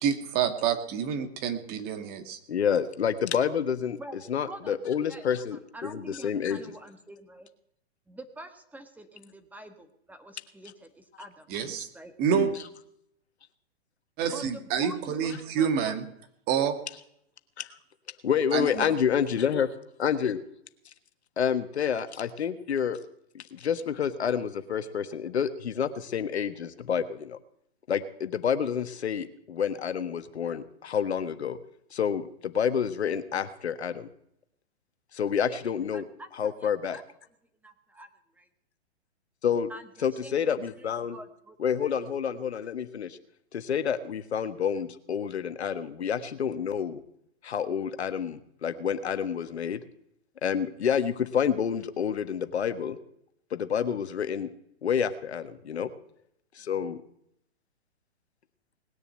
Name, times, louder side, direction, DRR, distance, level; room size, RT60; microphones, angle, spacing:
voice 1, 0.0-2.4 11.5-11.9 12.2-12.5 14.2-16.0 16.5-16.8 18.5-18.9, right 8 dB, 30° right, 9 dB, 1.8 m, -28 dB
voice 2, 2.5-4.0 4.3-6.7 12.3-12.5 17.6-17.7 18.2-19.7 20.0-20.4 21.4-23.0 23.3-27.4 27.9-31.6 31.9-34.1 35.1-36.0 36.4-37.0 39.4-39.7 40.0-41.2 41.6-43.2 43.5-47.0 47.4-49.8 50.4-53.0 53.5-54.5 54.8-55.9 56.5-57.0, left 7 dB, 75° left, 10 dB, 1.4 m, -28 dB
voice 3, 4.0-7.5 8.1-11.5 11.9-12.1 14.3-16.0 35.2-36.3 36.6-37.0 37.6-38.1 38.3-38.5 39.7-41.6 41.8-42.0, right 1 dB, 5° right, 7 dB, 1.4 m, -47 dB
19.5 x 6.9 x 9.0 m, 0.73 s
hypercardioid pair, 130°, 33 cm